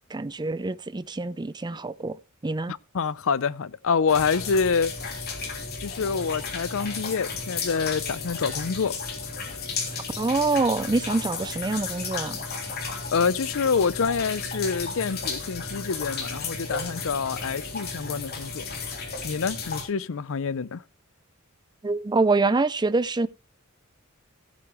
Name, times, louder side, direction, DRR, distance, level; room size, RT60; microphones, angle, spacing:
voice 1, 0.1-2.2 2.4-2.7 10.2-12.4 21.8-23.3, right 3 dB, 20° right, 0.5 m, -25 dB
voice 2, 2.7-4.9 5.8-9.0 13.1-18.6 19.2-20.8, left 5 dB, 65° left, 0.6 m, -26 dB
sound 1, 4.1-19.8, left 4 dB, 50° left, 3.2 m, -33 dB
16.0 x 7.9 x 3.1 m
head